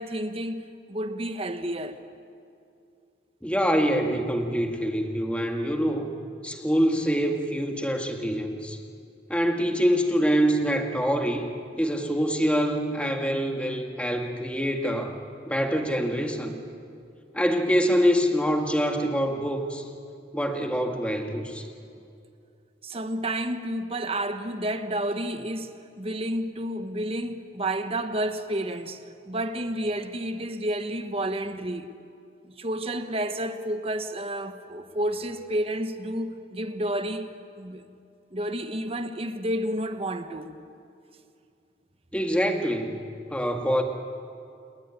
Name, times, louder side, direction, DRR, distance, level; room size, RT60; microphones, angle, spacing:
voice 1, 0.0-2.0 22.8-29.0 29.3-31.9 32.4-37.9 38.3-40.6, right 1 dB, 30° right, 1.3 m, -30 dB
voice 2, 3.4-6.1 6.4-8.8 9.3-11.4 11.8-16.6 17.3-19.8 20.3-21.6 42.1-43.0 43.3-43.8, equal, 5° left, 2.0 m, -25 dB
28.5 x 20.0 x 9.8 m
head